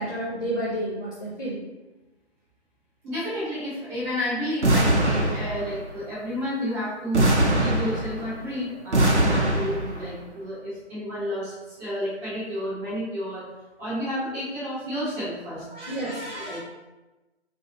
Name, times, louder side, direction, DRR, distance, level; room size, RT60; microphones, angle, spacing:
voice 1, 0.0-1.6 15.7-16.6, right 1 dB, 20° left, -11 dB, 0.7 m, -30 dB
voice 2, 3.0-13.4 13.8-15.7 16.3-16.6, equal, 10° right, -10 dB, 1.1 m, -31 dB
sound 1, 4.6-5.9 7.1-8.4 8.9-10.0, right 1 dB, 90° right, 1.2 m, -22 dB
3.5 x 3.5 x 3.9 m, 1.1 s
figure-of-eight pair, 155°, 34 cm